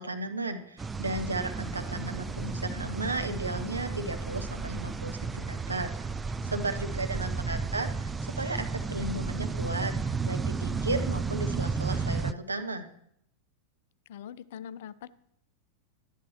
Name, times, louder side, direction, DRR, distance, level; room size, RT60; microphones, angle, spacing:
voice 1, 0.0-6.1 6.4-12.9, right 2 dB, 80° right, 6 dB, 0.8 m, -35 dB
sound 1, 0.8-12.3, right 4 dB, 15° right, 0.4 m, -33 dB
Idling, 1.6-5.8, left 4 dB, 20° left, 0.9 m, -53 dB
voice 2, 6.8-7.6 14.1-15.1, left 9 dB, 55° left, 17 dB, 0.4 m, -44 dB
12.0 x 10.0 x 3.1 m, 0.72 s
figure-of-eight pair, 90°, 0 cm